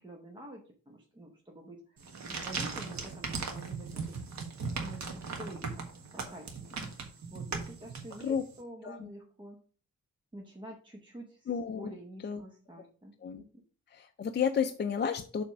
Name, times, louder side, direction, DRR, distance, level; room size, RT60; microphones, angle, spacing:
voice 1, 0.0-5.9 6.1-9.6 10.3-13.5, right 1 dB, 15° right, -1 dB, 1.0 m, -48 dB
sound 1, 2.0-8.5, right 4 dB, 70° right, 1.5 m, -38 dB
voice 2, 11.5-11.9 12.2-12.4 13.2-13.4 13.9-15.4, left 7 dB, 35° left, 6 dB, 0.5 m, -31 dB
7.2 x 3.4 x 6.1 m, 0.40 s
wide cardioid pair, 170°, 29 cm